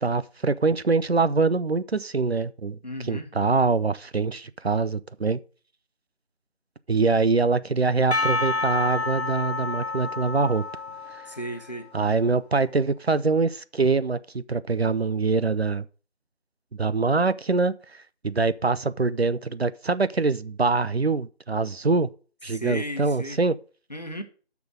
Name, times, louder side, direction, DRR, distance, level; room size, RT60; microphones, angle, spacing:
voice 1, 0.0-2.8 3.1-5.4 6.9-10.6 11.1-11.2 11.9-15.9 16.7-22.1 22.4-23.6, right 4 dB, 65° right, 0.7 m, -24 dB
voice 2, 2.8-3.3 11.3-11.9 22.5-23.4 23.9-24.2, equal, 40° left, 1.3 m, -34 dB
Percussion, 8.1-12.0, left 3 dB, 70° left, 1.4 m, -29 dB
7.4 x 6.1 x 7.7 m
figure-of-eight pair, 175°, 33 cm